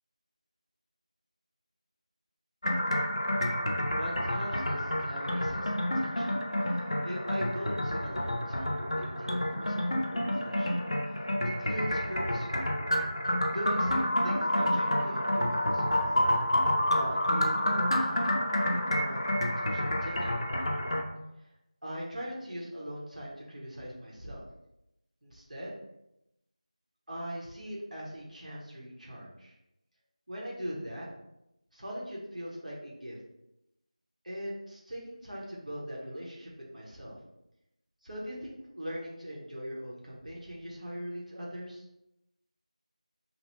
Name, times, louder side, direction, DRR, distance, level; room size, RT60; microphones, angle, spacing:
sound 1, 2.6-21.0, left 1 dB, 45° left, 0.4 m, -29 dB
voice 1, 3.9-6.4 6.7-10.9 11.4-12.7 13.5-16.2 16.9-19.2 19.7-21.0 21.4-21.5 21.8-24.4 25.2-25.8 27.1-29.6 30.3-31.1 31.7-33.2 34.2-37.2 38.0-41.9, equal, 90° right, -5 dB, 1.0 m, -41 dB
2.8 x 2.0 x 3.0 m, 0.88 s
figure-of-eight pair, 180°, 4 cm